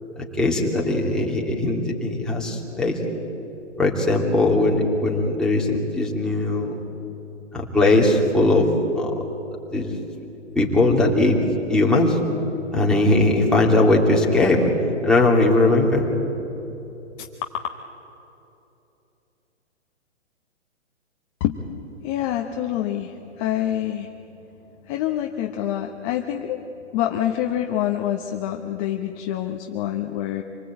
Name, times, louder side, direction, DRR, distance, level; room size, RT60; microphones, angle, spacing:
voice 1, 0.2-3.0 3.8-6.8 7.5-8.7 8.9-9.1 9.7-10.0 10.5-11.4 11.7-12.2 12.7-14.7 15.0-16.1, left 2 dB, ahead, -3 dB, 2.7 m, -19 dB
voice 2, 22.0-24.1 24.8-26.6 26.9-30.4, left 11 dB, 25° left, 4 dB, 1.1 m, -26 dB
27.0 x 19.5 x 8.8 m, 3.0 s
hypercardioid pair, 140°, 36 cm